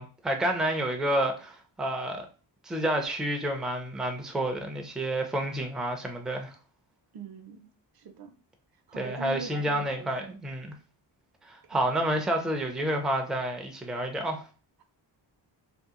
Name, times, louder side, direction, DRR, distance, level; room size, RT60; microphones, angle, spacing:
voice 1, 0.0-2.3 2.6-6.5 9.0-10.7 11.4-14.5, right 1 dB, ahead, 0.4 m, -29 dB
voice 2, 7.1-7.6 7.9-8.3 8.9-10.4 11.7-11.8, right 4 dB, 55° right, 0.6 m, -42 dB
2.8 x 2.4 x 3.6 m
wide cardioid pair, 145°, 45 cm